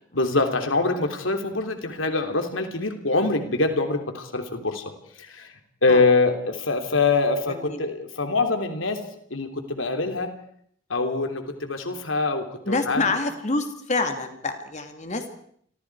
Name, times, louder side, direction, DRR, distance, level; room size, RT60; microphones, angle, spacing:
voice 1, 0.1-4.9 5.2-5.5 5.8-9.0 9.3-10.3 10.9-13.1, left 3 dB, 75° left, 6 dB, 3.2 m, -24 dB
voice 2, 7.5-7.8 12.7-15.3, left 3 dB, 35° left, 6 dB, 2.6 m, -27 dB
29.5 x 25.0 x 4.8 m, 0.64 s
head